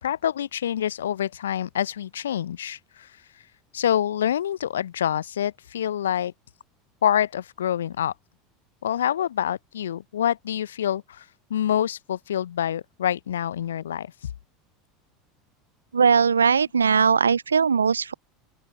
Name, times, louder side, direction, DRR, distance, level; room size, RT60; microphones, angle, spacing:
voice 1, 0.0-3.1 3.7-6.3 7.0-8.1 8.8-11.2 11.5-14.1, left 10 dB, 70° left, 0.6 m, -26 dB
voice 2, 15.9-18.1, right 6 dB, 80° right, 0.3 m, -19 dB
open air
figure-of-eight pair, 75°, 0 cm